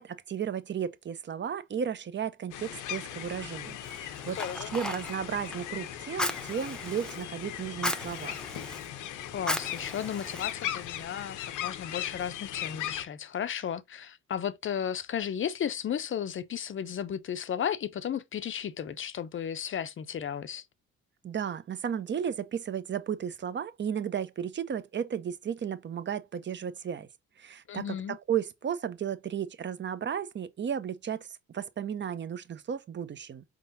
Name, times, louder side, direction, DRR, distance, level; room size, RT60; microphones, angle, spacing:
voice 1, 0.0-4.4 4.7-8.4 21.2-27.1 27.4-33.4, right 8 dB, 40° right, 0.6 m, -34 dB
sound 1, 2.5-13.0, left 11 dB, 85° left, 0.7 m, -38 dB
Fire, 3.8-11.0, left 1 dB, ahead, 0.7 m, -38 dB
voice 2, 4.3-4.7 9.3-20.6 27.7-28.2, left 8 dB, 40° left, 0.5 m, -34 dB
4.8 x 3.7 x 2.6 m
cardioid pair, 90°, 30 cm